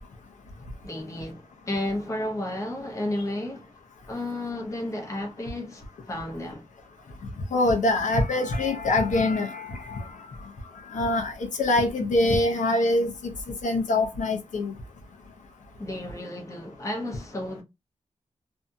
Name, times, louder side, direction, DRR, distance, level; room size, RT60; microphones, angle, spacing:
voice 1, 0.8-3.7 4.1-6.7 15.8-17.6, left 1 dB, 25° left, 0.7 m, -32 dB
voice 2, 7.5-10.1 10.4-10.5 10.9-13.3 13.6-14.7, left 2 dB, 85° left, 0.7 m, -24 dB
2.7 x 2.7 x 2.3 m
wide cardioid pair, 165°, 12 cm